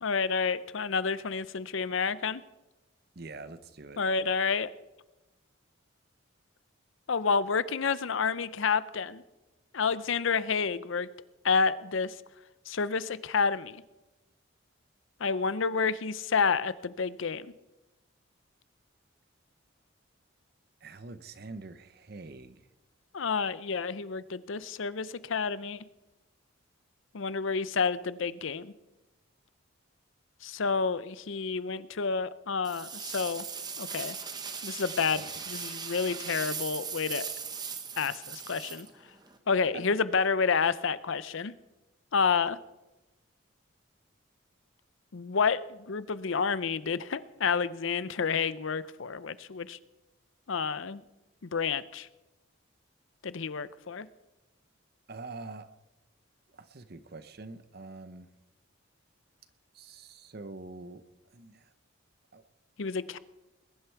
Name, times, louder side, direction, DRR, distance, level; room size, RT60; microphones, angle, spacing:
voice 1, 0.0-2.4 4.0-4.7 7.1-9.2 9.7-11.1 11.4-12.1 12.7-13.8 15.2-17.5 23.1-25.8 27.1-28.7 30.4-33.4 33.8-34.2 34.6-37.3 38.0-38.9 39.5-41.5 42.1-42.6 45.1-49.8 50.5-51.0 51.4-52.1 53.2-54.1 62.8-63.2, left 5 dB, 65° left, 16 dB, 0.6 m, -29 dB
voice 2, 3.1-4.0 20.8-22.7 35.1-35.4 39.7-39.8 55.1-55.7 56.5-58.3 59.7-61.0 61.3-61.7 62.3-62.4, right 3 dB, 50° right, 12 dB, 0.8 m, -45 dB
sound 1, 32.6-39.4, right 6 dB, 20° right, 1.0 m, -39 dB
21.0 x 11.5 x 4.6 m, 1.0 s
head